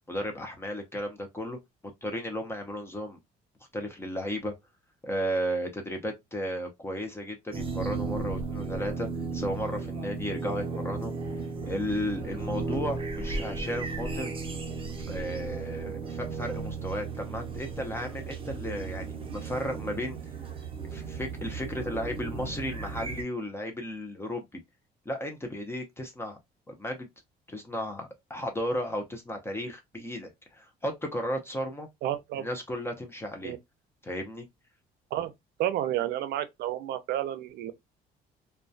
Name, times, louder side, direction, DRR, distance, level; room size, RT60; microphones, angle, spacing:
voice 1, 0.1-1.6 2.0-3.2 3.7-4.5 5.0-9.1 9.3-11.1 11.7-14.3 15.1-20.2 20.8-24.6 25.1-26.4 26.7-27.1 27.5-31.9 32.4-33.5 34.0-34.5, equal, 15° left, 0.5 m, -34 dB
sound 1, 7.5-23.2, right 4 dB, 30° right, 0.6 m, -35 dB
voice 2, 32.0-32.5 33.4-33.6 35.1-35.3 35.6-37.7, right 12 dB, 75° right, 0.4 m, -30 dB
2.2 x 2.1 x 2.5 m
cardioid pair, 110°, 17 cm